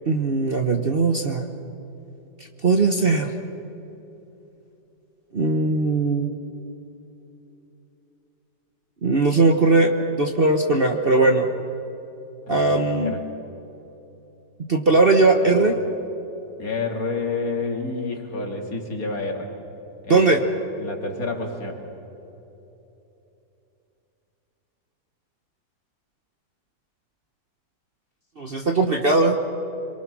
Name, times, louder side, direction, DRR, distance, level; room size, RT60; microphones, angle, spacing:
voice 1, 0.1-1.4 2.6-3.3 5.3-6.3 9.0-11.5 12.5-13.2 14.7-15.7 20.1-20.4 28.4-29.4, right 3 dB, 35° right, 4 dB, 1.2 m, -19 dB
voice 2, 12.5-13.2 15.5-15.7 16.6-19.5 20.0-20.3 20.8-21.8, left 3 dB, 55° left, 2 dB, 2.8 m, -29 dB
26.5 x 23.5 x 6.2 m, 3.0 s
omnidirectional pair, 1.9 m